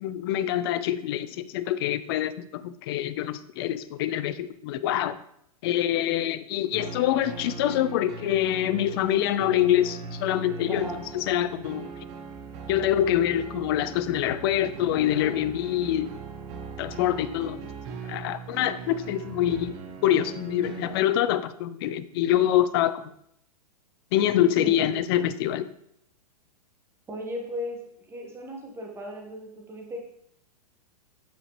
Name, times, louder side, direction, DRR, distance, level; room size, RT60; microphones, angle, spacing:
voice 1, 0.0-5.2 5.6-10.9 11.1-11.9 12.7-16.1 16.8-17.7 18.1-23.1 24.1-25.7, left 11 dB, 40° left, 14 dB, 0.4 m, -25 dB
sound 1, 6.7-21.0, right 5 dB, 40° right, 0.9 m, -40 dB
voice 2, 10.7-11.0 24.6-24.8 27.1-27.8 28.1-30.0, equal, 10° right, 0 dB, 1.4 m, -36 dB
9.0 x 4.9 x 3.1 m, 0.72 s
figure-of-eight pair, 105°, 20 cm